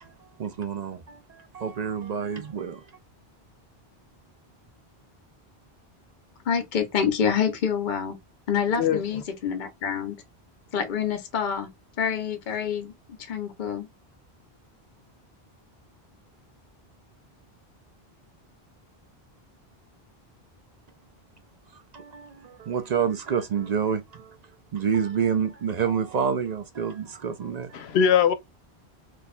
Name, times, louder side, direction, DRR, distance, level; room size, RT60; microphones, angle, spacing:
voice 1, 0.0-2.9 21.9-24.4 24.7-28.0, right 7 dB, 55° right, 0.5 m, -28 dB
voice 2, 6.5-8.2 8.5-10.2 10.7-11.7 12.0-12.9 13.2-13.9, left 7 dB, 55° left, 0.8 m, -27 dB
voice 3, 8.8-9.2 27.7-28.3, left 8 dB, 85° left, 0.8 m, -21 dB
3.2 x 2.2 x 4.1 m
omnidirectional pair, 1.0 m